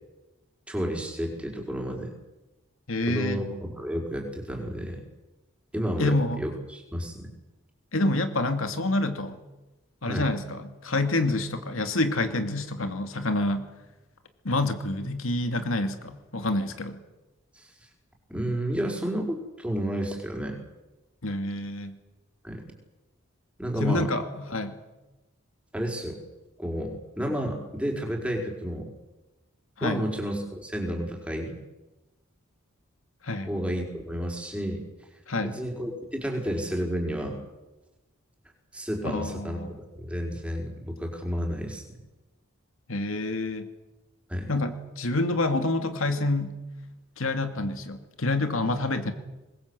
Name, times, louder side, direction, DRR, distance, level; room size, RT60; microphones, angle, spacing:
voice 1, 0.7-2.1 3.1-5.0 5.7-7.3 10.0-10.3 17.5-17.7 18.3-20.6 22.4-22.7 23.6-24.1 25.7-26.2 26.6-28.9 29.8-31.6 33.4-34.8 35.4-37.4 38.7-41.8 44.3-44.5, equal, 5° right, 1 dB, 4.8 m, -31 dB
voice 2, 2.9-3.4 6.0-6.4 7.9-9.4 10.0-13.7 14.4-17.0 21.2-22.0 23.8-24.8 29.8-30.0 33.2-33.5 35.3-35.6 39.0-39.7 42.9-43.7 44.5-46.5 47.2-49.1, left 2 dB, 85° left, 7 dB, 2.4 m, -27 dB
25.0 x 21.0 x 8.2 m, 1.1 s
head